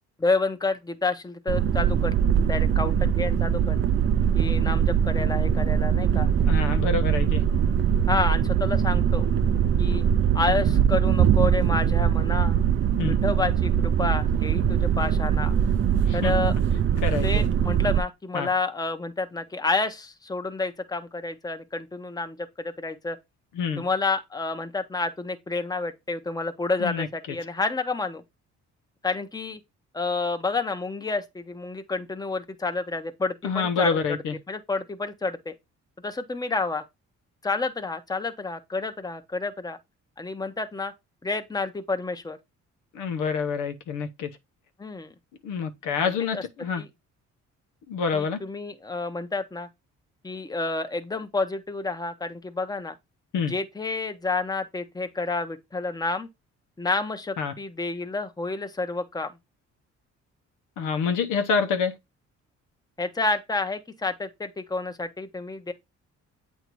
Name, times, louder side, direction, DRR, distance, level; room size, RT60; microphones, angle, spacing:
voice 1, 0.2-2.1 2.5-3.8 4.3-6.3 8.1-9.3 9.8-10.0 10.3-12.6 13.1-15.5 16.1-16.5 17.2-23.2 23.8-28.2 29.0-29.6 29.9-34.2 34.5-35.5 36.0-36.8 37.4-39.8 40.2-40.9 41.2-42.4 44.8-45.1 46.0-46.4 46.8-46.9 48.1-49.7 50.2-52.9 53.5-56.3 56.8-59.3 63.0-65.7, left 3 dB, 15° left, 0.8 m, -29 dB
sound 1, 1.5-18.0, right 8 dB, 45° right, 0.4 m, -22 dB
voice 2, 6.5-7.4 13.0-13.2 16.1-16.3 17.0-17.4 18.3-18.5 23.5-23.9 26.8-27.1 33.4-34.3 42.9-44.3 45.4-46.8 47.9-48.4 53.3-53.5 57.4-57.5 60.8-61.9, left 5 dB, 90° left, 0.9 m, -27 dB
8.1 x 2.7 x 4.6 m
cardioid pair, 90°, 30 cm